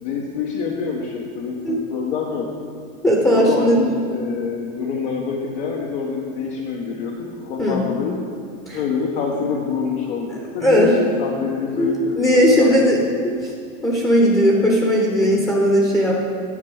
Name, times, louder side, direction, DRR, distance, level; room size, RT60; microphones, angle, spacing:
voice 1, 0.0-2.5 3.3-8.2 8.7-13.3, left 5 dB, 60° left, -2 dB, 1.3 m, -26 dB
voice 2, 3.0-3.8 7.6-7.8 8.7-8.8 10.6-10.9 11.8-13.5 13.8-16.2, equal, 10° left, -2 dB, 1.0 m, -17 dB
9.9 x 4.5 x 7.8 m, 2.3 s
supercardioid pair, 140°, 39 cm